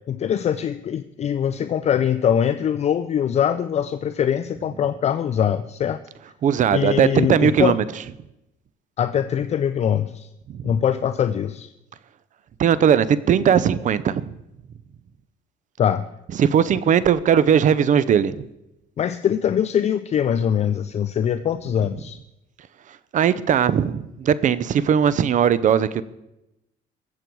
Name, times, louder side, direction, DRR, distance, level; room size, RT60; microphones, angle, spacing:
voice 1, 0.1-6.0 6.7-7.8 9.0-10.3 10.6-11.7 15.8-16.1 19.0-22.2, left 9 dB, 40° left, 0.5 m, -22 dB
voice 2, 6.4-7.8 10.5-10.7 12.6-14.2 16.4-18.4 23.1-26.0, right 8 dB, 50° right, 0.7 m, -18 dB
21.5 x 7.7 x 4.7 m
cardioid pair, 110°, 17 cm